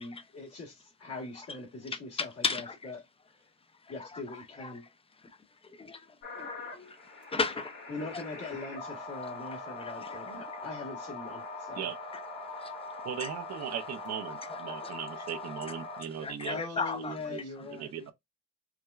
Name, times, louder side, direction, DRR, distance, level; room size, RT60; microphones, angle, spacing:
voice 1, 0.0-3.0 3.4-3.5 3.9-4.8 7.9-11.9 16.5-18.1, left 3 dB, 55° left, 1.5 m, -42 dB
voice 2, 2.2-2.9 3.8-4.7 5.2-5.4 5.6-7.0 7.2-7.7 8.1-8.2 8.8-8.9 9.7-10.2 12.5-12.7 13.2-13.3 14.5-14.9 16.2-17.2, left 4 dB, 20° left, 0.6 m, -36 dB
sound 1, 6.2-16.3, left 3 dB, 80° left, 2.3 m, -42 dB
voice 3, 13.0-18.1, right 9 dB, 60° right, 0.6 m, -39 dB
4.7 x 2.2 x 2.3 m
cardioid pair, 90°, 30 cm